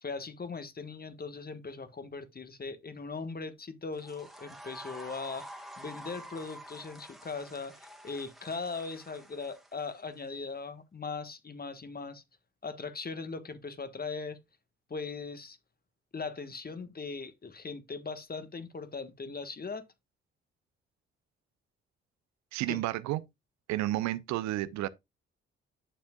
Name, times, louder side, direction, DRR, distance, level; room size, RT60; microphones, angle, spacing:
voice 1, 0.0-5.4 5.8-12.2 12.6-14.4 14.9-15.6 16.1-19.8 22.7-22.8, left 4 dB, 30° left, 1.4 m, -39 dB
sound 1, 3.9-10.3, right 1 dB, ahead, 2.0 m, -48 dB
voice 2, 22.5-23.2 23.7-24.9, right 16 dB, 75° right, 0.6 m, -31 dB
9.1 x 6.9 x 2.3 m
hypercardioid pair, 45°, 29 cm